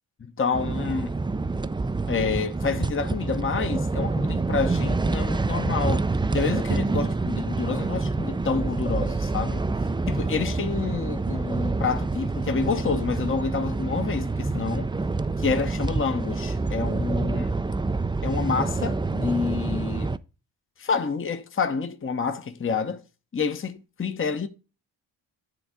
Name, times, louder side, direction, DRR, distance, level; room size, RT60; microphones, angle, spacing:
voice 1, 0.2-1.2 2.1-6.1 6.3-9.7 10.1-14.9 15.4-17.6 18.2-20.1 20.8-23.0 23.3-24.5, left 5 dB, 30° left, 0.8 m, -28 dB
sound 1, 0.5-20.2, right 3 dB, 10° right, 0.4 m, -27 dB
9.9 x 3.5 x 4.9 m
cardioid pair, 55°, 44 cm